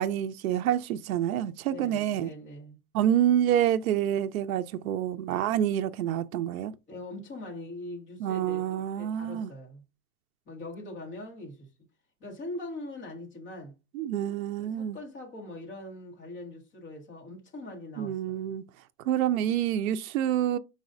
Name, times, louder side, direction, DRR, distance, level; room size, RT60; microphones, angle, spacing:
voice 1, 0.0-2.3 2.9-6.7 8.2-9.5 13.9-15.0 18.0-18.6 19.1-20.6, right 11 dB, 65° right, 0.5 m, -27 dB
voice 2, 1.7-2.8 6.9-9.8 10.5-11.7 12.2-13.7 14.6-18.5, left 2 dB, 15° left, 1.2 m, -42 dB
5.2 x 4.0 x 2.5 m
supercardioid pair, 175°, 45 cm